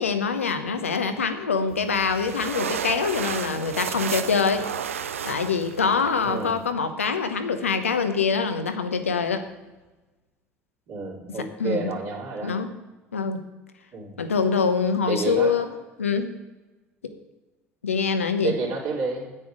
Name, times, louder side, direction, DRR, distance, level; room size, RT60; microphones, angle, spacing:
voice 1, 0.0-4.7 5.2-9.4 11.4-11.9 12.4-12.7 13.1-13.4 14.2-15.7 16.0-16.3 17.0-17.1 17.8-18.6, left 5 dB, 85° left, 9 dB, 0.8 m, -24 dB
sound 1, 1.7-6.7, right 8 dB, 80° right, 0.4 m, -33 dB
voice 2, 6.2-6.6 10.9-12.5 13.9-14.2 15.1-15.6 18.4-19.3, right 4 dB, 55° right, -3 dB, 3.2 m, -30 dB
9.7 x 8.7 x 4.9 m, 1.1 s
figure-of-eight pair, 60°, 7 cm